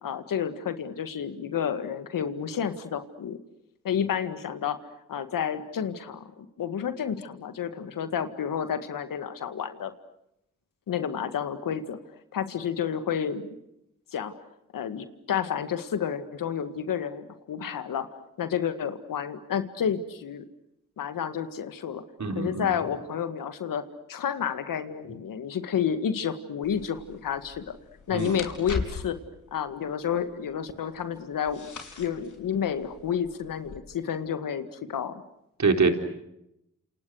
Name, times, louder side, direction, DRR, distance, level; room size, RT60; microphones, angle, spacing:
voice 1, 0.0-3.4 3.8-4.8 5.1-9.9 10.9-12.0 12.3-13.5 14.1-14.3 14.7-18.1 18.4-20.4 21.0-22.0 22.4-27.8 28.1-29.2 29.5-31.7 32.0-35.2, left 8 dB, 85° left, 10 dB, 2.0 m, -30 dB
voice 2, 22.2-22.7 28.1-28.4 35.6-35.9, right 4 dB, 60° right, 5 dB, 4.0 m, -24 dB
sound 1, 26.6-33.8, left 4 dB, 65° left, 4.9 m, -41 dB
29.0 x 28.0 x 6.5 m, 0.82 s
supercardioid pair, 40°, 32 cm